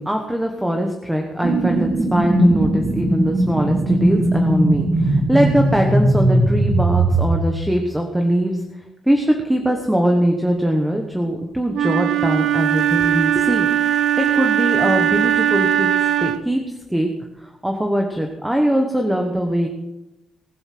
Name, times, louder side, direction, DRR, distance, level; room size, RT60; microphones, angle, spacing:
voice 1, 0.0-8.6 9.1-13.7 14.2-15.9 16.2-16.6 16.9-17.1 17.4-19.7, equal, 5° right, 3 dB, 1.1 m, -21 dB
sound 1, 1.4-7.4, right 1 dB, 50° right, 2.6 m, -18 dB
Wind instrument woodwind instrument, 11.7-16.6, right 10 dB, 70° right, 0.8 m, -19 dB
19.5 x 8.0 x 6.0 m, 0.93 s
wide cardioid pair, 180°, 0 cm